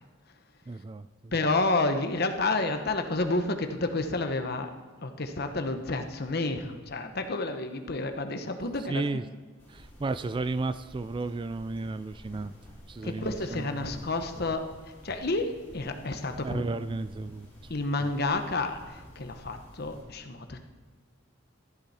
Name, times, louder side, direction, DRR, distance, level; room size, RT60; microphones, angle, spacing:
voice 1, 0.7-1.3 8.3-8.5 8.9-9.3 9.7-12.5 12.9-14.0 14.3-14.5 16.4-17.7 18.0-18.1, right 3 dB, 25° right, 13 dB, 0.3 m, -34 dB
voice 2, 1.3-4.7 5.0-9.0 13.0-14.6 15.0-16.6 17.7-20.6, left 2 dB, 55° left, 7 dB, 1.1 m, -30 dB
sound 1, 9.6-20.0, equal, 10° left, 4.0 m, -51 dB
13.5 x 11.5 x 4.3 m, 1.4 s
head